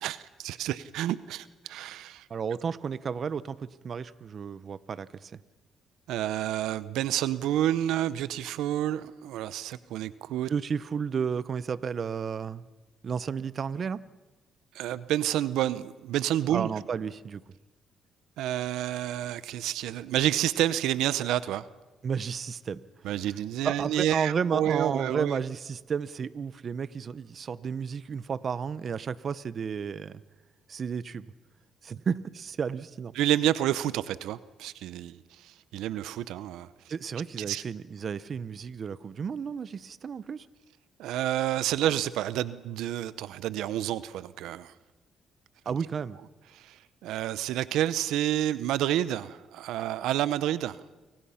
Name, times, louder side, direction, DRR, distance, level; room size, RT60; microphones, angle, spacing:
voice 1, 0.0-2.3 6.1-10.5 14.7-16.7 18.4-21.7 23.0-25.4 33.1-36.7 37.4-37.6 41.0-44.7 46.5-50.8, right 12 dB, 90° right, 16 dB, 0.7 m, -29 dB
voice 2, 2.3-5.4 10.5-12.7 13.0-14.0 16.5-17.4 22.0-22.8 23.6-30.2 30.7-31.3 31.8-33.1 36.9-40.5 45.7-46.2, right 6 dB, 50° right, 16 dB, 0.8 m, -32 dB
30.0 x 24.5 x 5.7 m, 1.1 s
cardioid pair, 90°, 0 cm